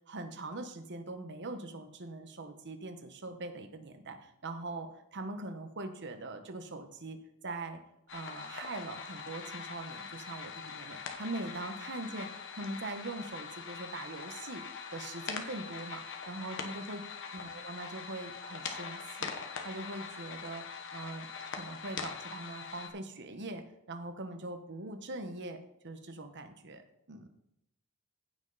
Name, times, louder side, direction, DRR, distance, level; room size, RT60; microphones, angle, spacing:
voice 1, 0.1-7.8 8.1-14.6 14.9-17.0 17.3-19.3 19.6-27.3, right 2 dB, 55° right, 7 dB, 1.0 m, -42 dB
sound 1, 8.1-22.9, left 6 dB, 60° left, 1.1 m, -43 dB
15.5 x 5.5 x 4.0 m, 0.79 s
head